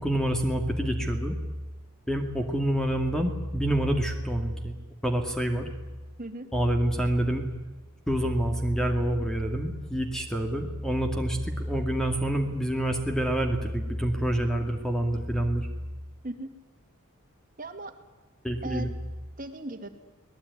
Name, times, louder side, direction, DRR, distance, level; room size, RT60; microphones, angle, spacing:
voice 1, 0.0-1.4 2.1-4.8 5.0-5.7 6.5-7.5 8.1-15.7 18.4-18.9, right 1 dB, 5° left, 4 dB, 2.2 m, -27 dB
voice 2, 17.6-17.9 18.6-18.9 19.4-19.9, right 2 dB, 40° right, 7 dB, 2.3 m, -37 dB
24.0 x 19.5 x 9.6 m, 1.2 s
head